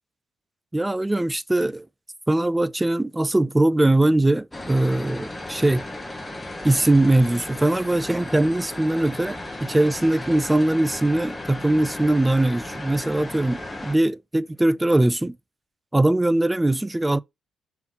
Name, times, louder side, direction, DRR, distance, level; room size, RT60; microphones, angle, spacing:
voice 1, 0.7-1.9 2.3-5.8 6.6-15.4 15.9-17.2, right 1 dB, 10° right, 0.3 m, -21 dB
sound 1, 4.5-14.0, left 1 dB, 10° left, 0.9 m, -35 dB
3.8 x 2.8 x 4.4 m
cardioid pair, 90°, 0 cm